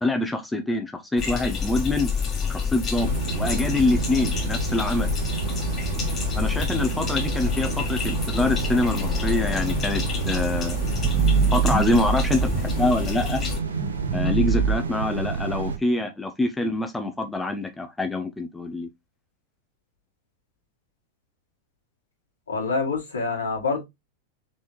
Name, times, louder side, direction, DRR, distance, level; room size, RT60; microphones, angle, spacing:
voice 1, 0.0-2.1 2.5-5.1 6.4-10.8 11.5-13.4 14.1-18.9, left 2 dB, 10° left, 0.6 m, -25 dB
sound 1, 1.2-13.6, left 5 dB, 30° left, 1.4 m, -28 dB
sound 2, 3.0-15.8, right 5 dB, 75° right, 0.7 m, -30 dB
sound 3, 9.0-13.3 13.8-14.7, right 5 dB, 35° right, 1.2 m, -25 dB
voice 2, 22.5-23.9, left 4 dB, 75° left, 2.1 m, -26 dB
4.1 x 3.6 x 3.1 m
figure-of-eight pair, 90°, 0 cm